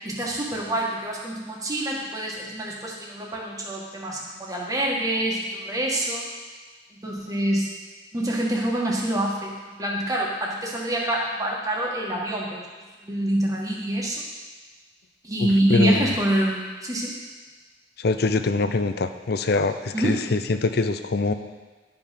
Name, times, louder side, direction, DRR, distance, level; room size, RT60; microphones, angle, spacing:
voice 1, 0.0-6.2 6.9-7.7 8.1-12.6 13.0-14.2 15.2-17.2 19.9-20.2, right 1 dB, 20° right, -2 dB, 1.6 m, -26 dB
voice 2, 15.4-16.1 18.0-21.3, left 3 dB, 60° left, 9 dB, 0.6 m, -24 dB
11.0 x 5.2 x 5.8 m, 1.3 s
head